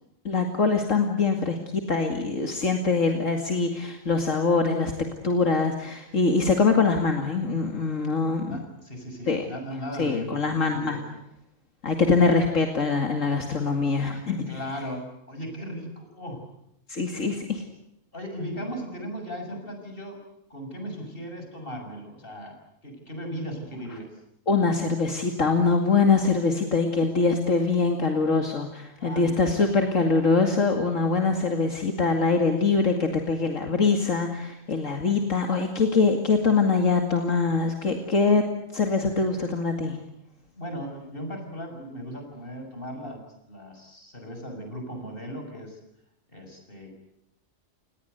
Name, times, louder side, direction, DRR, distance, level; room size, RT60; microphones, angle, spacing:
voice 1, 0.2-4.9 5.2-8.6 9.3-9.4 10.0-11.0 11.8-14.5 16.9-17.6 24.5-38.5 38.7-40.0, left 4 dB, 75° left, 4 dB, 2.7 m, -23 dB
voice 2, 8.4-10.4 10.7-11.0 12.3-12.4 14.1-16.4 18.1-20.2 20.5-22.6 22.8-24.1 29.0-29.7 40.5-43.2 43.5-45.8 46.3-46.9, equal, 45° left, 4 dB, 7.0 m, -37 dB
30.0 x 19.5 x 8.1 m, 0.82 s
omnidirectional pair, 1.3 m